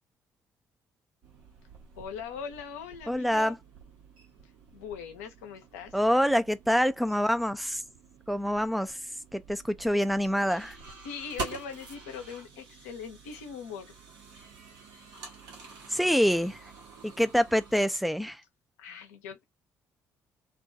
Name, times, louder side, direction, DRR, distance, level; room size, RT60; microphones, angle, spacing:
sound 1, 1.2-17.9, right 4 dB, 70° right, 1.0 m, -47 dB
voice 1, 2.0-3.6 4.7-6.0 10.6-10.7 11.0-13.9 18.8-19.4, left 6 dB, 80° left, 0.6 m, -41 dB
voice 2, 3.1-3.6 5.9-7.8 8.3-9.0 9.3-10.8 15.9-16.6 17.0-18.4, equal, ahead, 0.4 m, -26 dB
2.4 x 2.2 x 2.6 m
hypercardioid pair, 50°, 8 cm